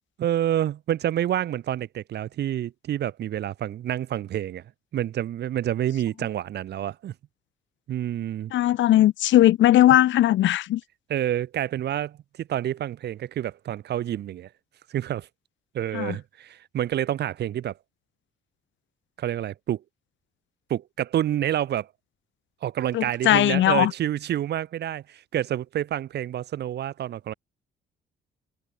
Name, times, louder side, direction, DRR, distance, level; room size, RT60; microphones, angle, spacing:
voice 1, 0.2-4.6 4.9-7.1 7.9-8.5 11.1-14.5 14.9-15.3 15.7-17.7 19.2-19.8 20.7-21.9 22.6-27.3, right 11 dB, 60° right, 0.6 m, -28 dB
voice 2, 8.5-10.8 15.9-16.2 22.9-23.9, left 13 dB, 70° left, 0.7 m, -19 dB
cardioid pair, 90°, 20 cm